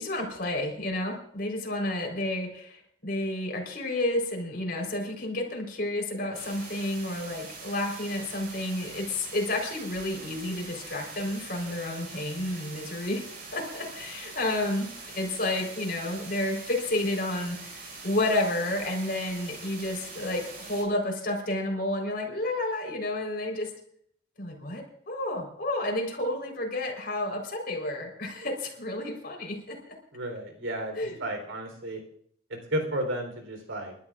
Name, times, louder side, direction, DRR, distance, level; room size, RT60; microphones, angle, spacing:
voice 1, 0.0-23.7 24.4-29.8 30.9-31.3, left 1 dB, 50° left, 1 dB, 4.1 m, -31 dB
sound 1, 6.3-20.8, right 3 dB, 45° right, 5.1 m, -43 dB
voice 2, 30.1-32.0 32.5-33.9, right 1 dB, 85° right, 4 dB, 3.9 m, -33 dB
29.0 x 12.5 x 2.5 m, 0.67 s
head